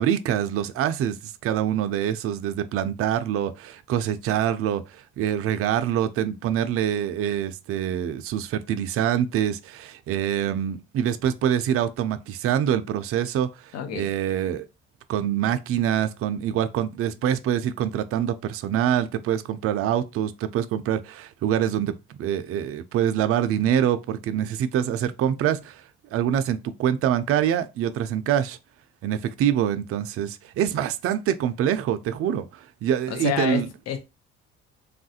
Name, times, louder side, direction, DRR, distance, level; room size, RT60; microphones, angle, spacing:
voice 1, 0.0-13.5 13.9-14.7 15.1-25.8 26.1-28.6 29.0-33.7, right 10 dB, 50° right, 0.4 m, -25 dB
voice 2, 13.7-14.1 33.1-34.0, left 9 dB, 60° left, 0.7 m, -28 dB
3.2 x 2.4 x 2.7 m
supercardioid pair, 90°, 29 cm